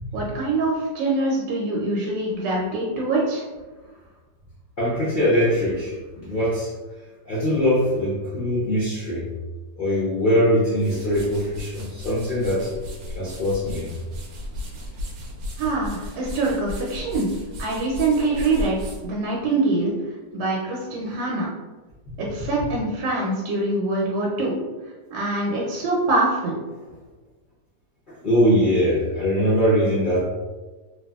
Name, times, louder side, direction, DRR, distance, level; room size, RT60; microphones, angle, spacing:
voice 1, 0.1-3.4 15.6-17.3 17.6-18.8 19.0-19.9 20.3-21.5 22.2-24.6 25.1-26.6, right 2 dB, 85° right, -3 dB, 1.3 m, -24 dB
voice 2, 4.8-6.7 7.3-9.3 9.8-12.7 13.2-13.9 28.1-30.2, equal, 75° left, -9 dB, 0.4 m, -22 dB
sound 1, 10.6-19.9, left 1 dB, 70° right, 0.9 m, -36 dB
2.9 x 2.5 x 2.3 m, 1.3 s
omnidirectional pair, 2.0 m